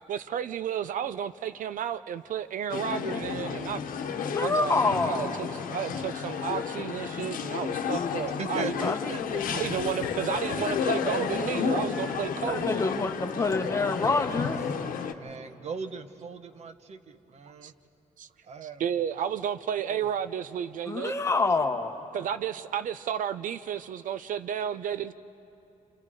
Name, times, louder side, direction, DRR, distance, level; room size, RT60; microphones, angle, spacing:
voice 1, 0.1-3.8 4.4-4.8 5.0-8.7 9.5-12.8 17.6-17.7 18.2-18.3 18.8-21.1 22.1-25.1, right 9 dB, 75° right, 12 dB, 0.5 m, -32 dB
sound 1, 2.7-15.1, left 6 dB, 90° left, 1.1 m, -31 dB
voice 2, 4.2-5.4 8.8-9.0 12.4-14.6 20.9-21.9, left 3 dB, 20° left, 6 dB, 0.9 m, -27 dB
voice 3, 8.2-9.9 15.1-17.7 18.4-18.8 19.8-20.1, right 5 dB, 55° right, 9 dB, 0.9 m, -39 dB
29.0 x 28.0 x 4.9 m, 2.8 s
wide cardioid pair, 165°, 14 cm